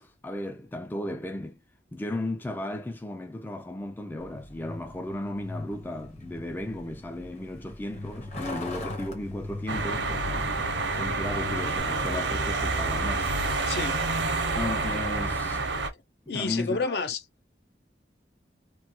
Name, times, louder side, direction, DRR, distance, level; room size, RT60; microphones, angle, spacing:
voice 1, 0.0-1.6 1.9-10.5 10.9-13.3 14.6-15.7 16.3-17.0, left 1 dB, 10° left, 0.3 m, -35 dB
Truck, 4.2-11.8, left 1 dB, 40° left, 0.9 m, -40 dB
sound 1, 9.7-15.9, right 3 dB, 85° right, 0.8 m, -28 dB
voice 2, 13.7-14.0 16.3-17.2, left 4 dB, 60° left, 0.5 m, -29 dB
3.0 x 2.2 x 2.9 m
head